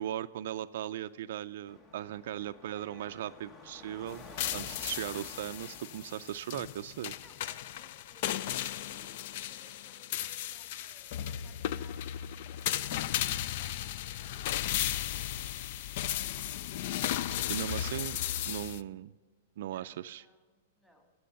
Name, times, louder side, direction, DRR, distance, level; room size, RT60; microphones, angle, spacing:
voice 1, 0.0-4.2 4.5-7.1 17.5-18.2 18.5-19.1 19.6-20.2, right 12 dB, 65° right, 11 dB, 0.4 m, -38 dB
Car passing by / Traffic noise roadway noise / Engine, 1.7-9.0, left 3 dB, 25° left, 1.1 m, -53 dB
voice 2, 2.4-3.3 7.2-15.3 16.2-16.8 19.7-21.1, equal, 10° left, 2 dB, 2.7 m, -63 dB
sound 1, 4.1-18.8, left 11 dB, 55° left, 0.4 m, -35 dB
15.0 x 6.9 x 6.9 m, 1.4 s
hypercardioid pair, 130°, 0 cm